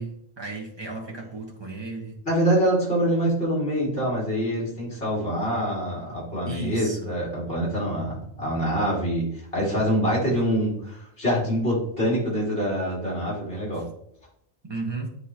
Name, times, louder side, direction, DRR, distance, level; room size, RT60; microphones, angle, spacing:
voice 1, 0.0-2.2 6.3-7.1 14.6-15.1, right 3 dB, 20° right, 0 dB, 1.2 m, -34 dB
voice 2, 2.3-9.3 9.5-13.8, equal, 50° left, -5 dB, 2.7 m, -25 dB
10.0 x 3.7 x 2.9 m, 0.71 s
omnidirectional pair, 1.3 m